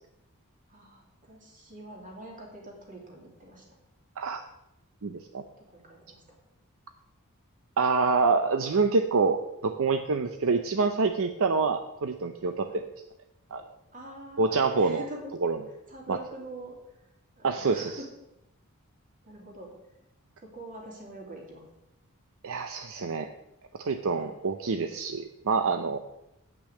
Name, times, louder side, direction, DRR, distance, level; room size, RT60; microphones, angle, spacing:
voice 1, 0.7-3.6 5.6-6.4 12.7-12.8 13.9-15.3 15.9-17.0 17.4-18.1 19.2-19.7 20.4-21.6 24.1-24.3, right 1 dB, 35° right, -1 dB, 2.8 m, -45 dB
voice 2, 5.0-5.4 7.8-12.8 13.5-13.6 14.4-15.0 15.4-15.6 16.1-16.2 17.4-18.0 22.4-23.3 23.7-26.0, right 4 dB, 65° right, 7 dB, 0.6 m, -26 dB
8.4 x 6.0 x 7.7 m, 0.88 s
head